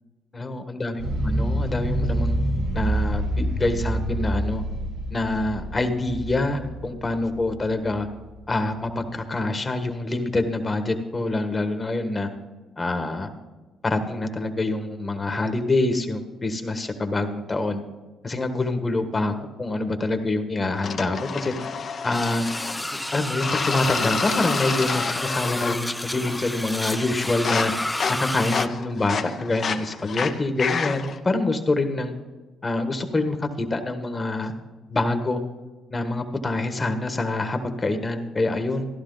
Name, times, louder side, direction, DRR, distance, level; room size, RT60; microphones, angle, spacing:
voice 1, 0.3-2.4 2.7-4.6 5.1-8.1 8.5-12.3 12.8-13.3 13.8-17.8 18.2-21.5 22.0-22.5 23.1-27.7 28.1-32.1 32.6-34.5 34.9-35.4 35.9-38.9, left 2 dB, 30° left, 7 dB, 1.4 m, -26 dB
sound 1, 1.0-8.3, right 1 dB, 80° right, 3.0 m, -27 dB
sound 2, 20.8-22.9 23.4-25.9 26.1-26.6 26.9-31.2, left 6 dB, 50° left, 0.9 m, -30 dB
sound 3, 22.1-28.7, left 1 dB, 10° left, 0.3 m, -30 dB
14.0 x 11.5 x 4.0 m, 1.3 s
cardioid pair, 90°, 0 cm